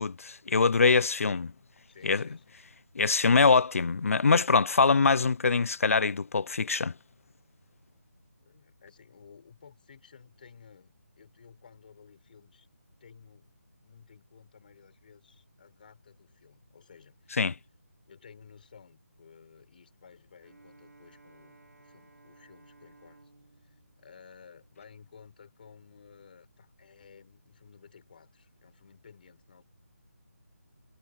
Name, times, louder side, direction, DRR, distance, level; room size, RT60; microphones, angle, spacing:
voice 1, 0.0-1.5 2.0-2.2 3.0-6.9 17.4-17.5, left 4 dB, 60° left, 0.4 m, -23 dB
voice 2, 1.9-2.7 8.4-12.7 13.0-13.5 13.8-17.4 18.0-23.3 23.6-29.6, left 6 dB, 35° left, 4.3 m, -55 dB
Bowed string instrument, 20.4-25.1, right 3 dB, 80° right, 4.9 m, -59 dB
figure-of-eight pair, 170°, 9 cm